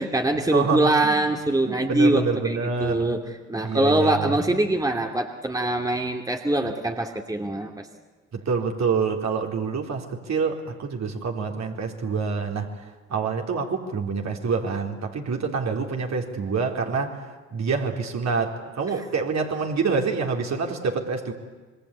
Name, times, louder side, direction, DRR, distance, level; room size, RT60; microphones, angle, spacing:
voice 1, 0.0-3.2 3.5-7.9, right 1 dB, 10° right, 3 dB, 2.6 m, -23 dB
voice 2, 0.5-1.2 1.7-3.2 3.6-4.4 8.3-12.7 13.1-17.2 17.5-21.3, right 5 dB, 45° right, 2 dB, 3.9 m, -27 dB
26.5 x 24.0 x 8.5 m, 1.3 s
figure-of-eight pair, 50°, 38 cm